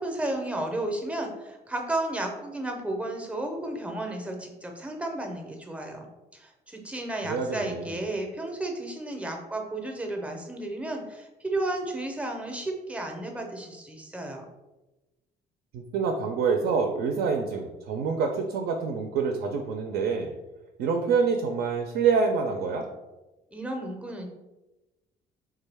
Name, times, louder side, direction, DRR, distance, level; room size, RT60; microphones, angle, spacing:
voice 1, 0.0-6.1 6.3-14.5 23.5-24.3, right 1 dB, 5° right, 3 dB, 0.5 m, -33 dB
voice 2, 7.3-7.9 15.7-20.3 20.8-22.9, right 5 dB, 70° right, 4 dB, 0.4 m, -26 dB
3.6 x 2.2 x 3.3 m, 1.1 s
cardioid pair, 110°, 17 cm